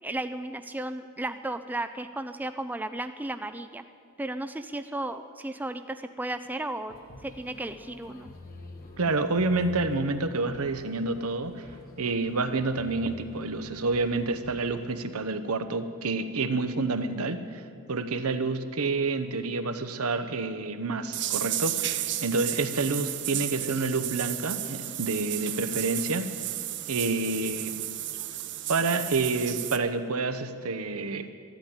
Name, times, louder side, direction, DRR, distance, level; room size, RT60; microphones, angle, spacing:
voice 1, 0.0-3.8 4.2-6.9 7.2-8.3, right 1 dB, 10° right, 9 dB, 0.4 m, -34 dB
sound 1, 6.9-14.9, left 2 dB, 45° left, 1.3 m, -48 dB
voice 2, 9.0-11.5 12.0-17.6 17.9-26.3 26.9-27.8 28.7-31.3, right 3 dB, 80° right, 9 dB, 0.9 m, -28 dB
sound 2, 21.1-29.8, right 13 dB, 55° right, 0.7 m, -33 dB
13.0 x 12.0 x 8.8 m, 2.3 s
head